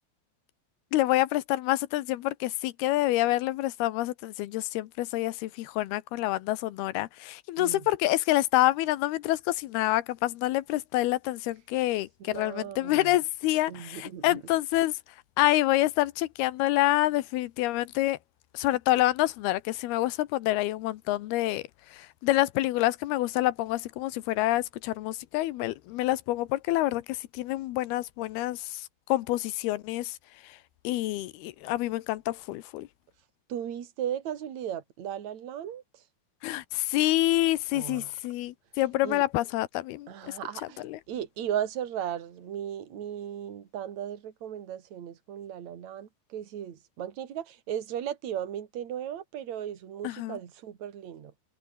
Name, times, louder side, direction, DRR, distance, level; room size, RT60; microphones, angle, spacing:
voice 1, 0.9-15.0 15.4-18.2 18.5-21.6 21.9-30.2 30.4-30.6 30.8-32.9 36.4-40.3 40.8-41.0 50.0-50.4, left 16 dB, 85° left, 2.9 m, -27 dB
voice 2, 12.2-13.2 13.7-14.4 33.5-35.8 37.7-38.1 39.0-39.2 40.1-51.3, right 10 dB, 50° right, 3.4 m, -36 dB
omnidirectional pair, 4.4 m